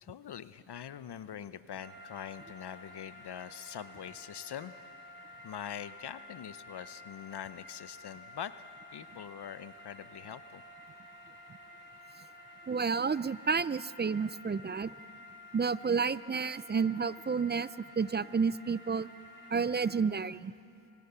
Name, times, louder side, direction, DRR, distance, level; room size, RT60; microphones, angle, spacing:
voice 1, 0.0-4.8 5.4-10.6, left 9 dB, 55° left, 14 dB, 0.8 m, -43 dB
sound 1, 1.8-20.0, left 2 dB, 45° right, 5.2 m, -52 dB
voice 2, 12.7-14.9 15.5-17.7 18.0-19.1 19.5-20.5, right 5 dB, 25° right, 18 dB, 0.4 m, -30 dB
24.5 x 18.5 x 6.9 m, 2.8 s
cardioid pair, 55°, 47 cm